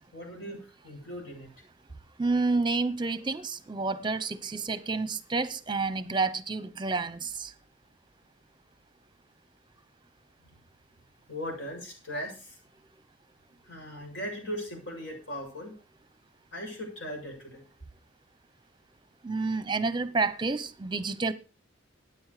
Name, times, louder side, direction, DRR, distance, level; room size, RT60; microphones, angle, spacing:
voice 1, 0.1-1.5 11.3-12.6 13.7-15.7 16.5-17.6, equal, 65° left, 7.4 m, -38 dB
voice 2, 2.2-7.5 19.2-21.3, right 3 dB, 25° right, 0.8 m, -29 dB
13.5 x 9.7 x 5.0 m
head